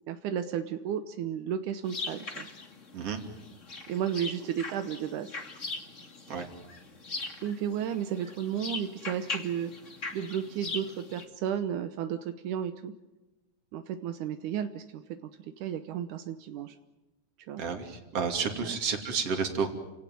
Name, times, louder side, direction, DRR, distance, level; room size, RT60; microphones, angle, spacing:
voice 1, 0.1-2.5 3.9-5.3 7.4-9.7 10.1-12.9 13.7-15.2 15.6-16.8 17.5-17.6, right 9 dB, 70° right, 9 dB, 1.9 m, -33 dB
sound 1, 1.8-11.3, left 3 dB, 25° left, 1.9 m, -40 dB
voice 2, 17.6-19.7, right 5 dB, 40° right, 5 dB, 3.4 m, -31 dB
30.0 x 18.0 x 9.3 m, 1.1 s
omnidirectional pair, 4.7 m